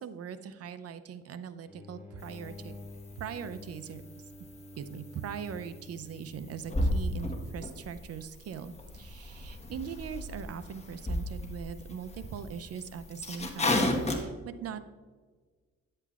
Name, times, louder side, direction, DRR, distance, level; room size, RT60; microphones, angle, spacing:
voice 1, 0.0-2.7 3.2-4.2 4.8-14.8, right 7 dB, 55° right, 12 dB, 0.6 m, -41 dB
sound 1, 1.7-7.0, left 2 dB, 5° right, 1.1 m, -49 dB
sound 2, 2.2-14.2, left 1 dB, 20° left, 1.2 m, -35 dB
10.0 x 7.6 x 2.4 m, 1.4 s
cardioid pair, 90°, 30 cm